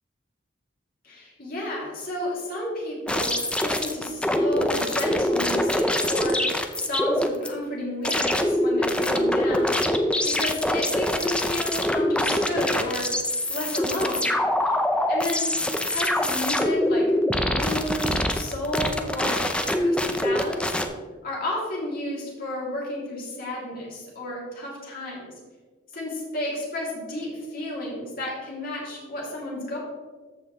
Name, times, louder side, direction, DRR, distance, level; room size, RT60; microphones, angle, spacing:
voice 1, 1.0-6.4 6.7-13.1 13.5-14.4 14.7-14.8 15.1-15.5 15.9-17.1 17.4-20.6 21.2-25.3 25.9-29.8, left 1 dB, 50° left, -4 dB, 3.0 m, -32 dB
sound 1, 3.1-7.5 8.0-20.9, left 1 dB, 5° left, 0.5 m, -24 dB
14.0 x 5.9 x 3.2 m, 1.4 s
head